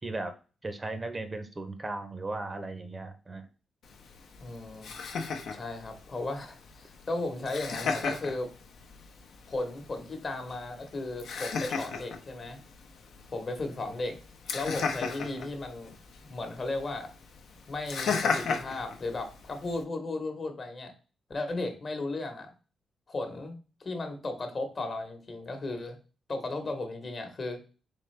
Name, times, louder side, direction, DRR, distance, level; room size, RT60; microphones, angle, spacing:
voice 1, 0.0-0.3 0.6-3.4, right 2 dB, 30° right, 9 dB, 0.6 m, -36 dB
Laughter, 3.8-19.8, left 5 dB, 75° left, 0.6 m, -37 dB
voice 2, 4.4-4.9 5.5-8.5 9.5-12.6 13.3-14.2 14.5-16.0 16.3-17.1 17.7-20.9 21.3-22.5 23.1-26.0 26.3-27.6, left 2 dB, 45° left, 6 dB, 1.0 m, -35 dB
3.8 x 3.4 x 3.2 m, 0.35 s
cardioid pair, 70°, 0 cm